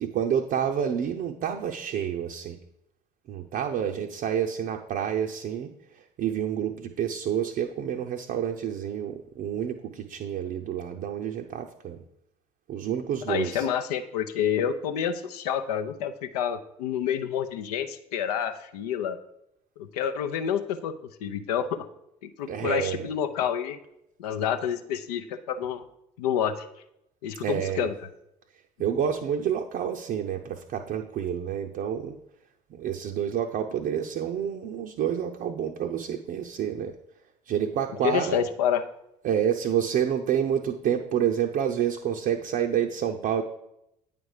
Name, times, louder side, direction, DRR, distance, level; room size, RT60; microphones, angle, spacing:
voice 1, 0.0-2.6 3.3-5.7 6.2-12.0 12.7-13.7 22.5-23.1 27.4-27.9 28.8-32.2 32.7-36.9 37.5-38.4 39.2-43.4, right 9 dB, 45° right, 3 dB, 0.6 m, -28 dB
voice 2, 13.3-19.2 19.8-20.9 21.2-21.7 22.2-23.8 24.2-25.8 26.2-26.7 27.2-27.9 38.0-38.8, left 8 dB, 70° left, 8 dB, 0.6 m, -28 dB
8.7 x 5.0 x 4.8 m, 0.82 s
figure-of-eight pair, 55°, 21 cm